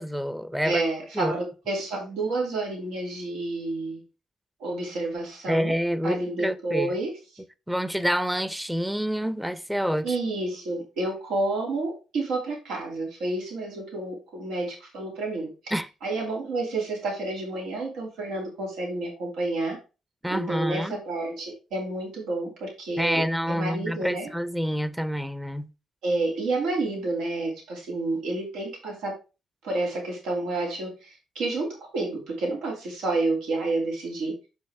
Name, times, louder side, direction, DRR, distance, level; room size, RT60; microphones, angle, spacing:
voice 1, 0.0-0.8 1.2-1.3 5.5-6.9 7.7-10.1 15.7-15.9 20.2-21.0 23.0-25.7, equal, 5° right, 0.6 m, -27 dB
voice 2, 0.6-4.0 4.6-5.7 6.0-7.1 10.0-15.7 16.0-19.8 20.3-24.3 26.0-29.2 29.6-34.3, right 2 dB, 90° right, 2.5 m, -29 dB
6.4 x 5.5 x 3.3 m
cardioid pair, 90°, 0 cm